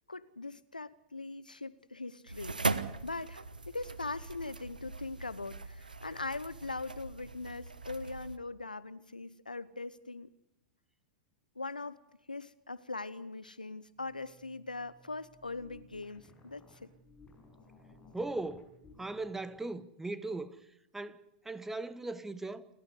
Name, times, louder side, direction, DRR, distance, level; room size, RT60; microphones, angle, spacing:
voice 1, 0.1-2.6 3.0-10.3 11.6-12.0 12.3-16.9, left 3 dB, 85° left, 0.9 m, -41 dB
sound 1, 2.3-8.4, right 3 dB, 80° right, 1.3 m, -39 dB
sound 2, 14.0-19.7, left 2 dB, 20° left, 6.8 m, -59 dB
voice 2, 18.1-20.6 20.9-22.7, right 2 dB, 5° right, 1.3 m, -39 dB
29.0 x 13.0 x 9.9 m
figure-of-eight pair, 95°, 4 cm